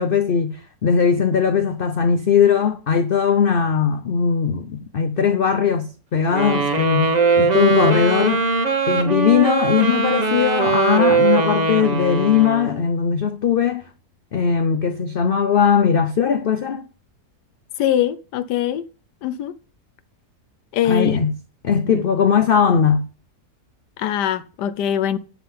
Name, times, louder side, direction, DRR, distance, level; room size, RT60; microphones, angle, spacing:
voice 1, 0.0-8.4 8.8-13.8 14.3-16.9 20.8-21.3 21.6-23.1, left 7 dB, 65° left, 0.5 m, -19 dB
Wind instrument woodwind instrument, 6.3-12.8, right 4 dB, 30° right, 0.9 m, -20 dB
voice 2, 17.8-18.9 19.2-19.5 20.7-21.2 21.9-22.0 24.0-25.2, left 10 dB, 85° left, 1.3 m, -22 dB
10.5 x 3.8 x 7.0 m
omnidirectional pair, 1.7 m